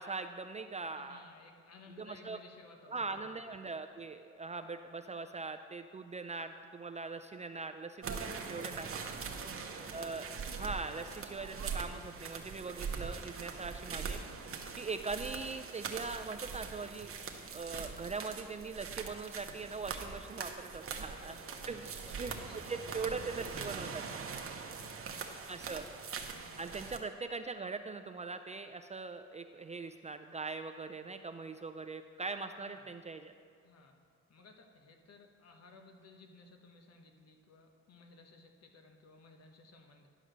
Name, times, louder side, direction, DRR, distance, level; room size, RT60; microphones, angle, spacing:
voice 1, 0.0-1.2 2.0-2.4 2.9-9.0 9.9-10.3 10.5-14.2 14.8-17.1 17.5-21.3 21.7-22.3 22.7-24.0 25.5-25.9 26.6-33.3, right 4 dB, 25° right, 7 dB, 0.4 m, -41 dB
voice 2, 1.0-3.4 9.3-10.2 14.6-14.8 21.1-23.6 24.6-25.5 26.3-27.0 32.6-32.9 33.6-34.0 34.3-40.1, left 3 dB, 55° left, 3 dB, 1.3 m, -58 dB
sound 1, 8.0-27.0, right 5 dB, 45° right, 1.0 m, -42 dB
11.0 x 4.9 x 6.5 m, 2.3 s
cardioid pair, 90°, 30 cm